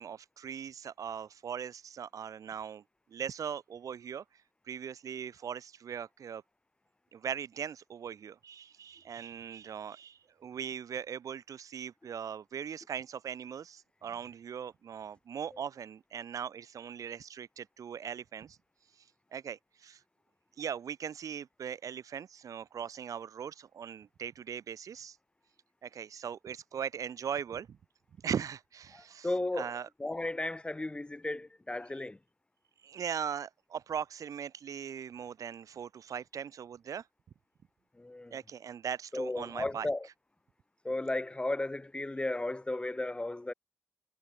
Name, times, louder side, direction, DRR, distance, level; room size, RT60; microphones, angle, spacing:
voice 1, 0.0-2.8 3.1-4.2 4.7-6.4 7.1-18.6 19.3-20.0 20.6-25.2 25.8-27.8 28.2-29.3 29.5-29.9 32.8-37.0 38.3-39.9, right 8 dB, 80° right, 1.2 m, -40 dB
voice 2, 28.9-32.2 38.0-38.4 39.1-40.1 40.8-43.5, left 2 dB, 20° left, 0.6 m, -35 dB
cardioid pair, 80°, 6 cm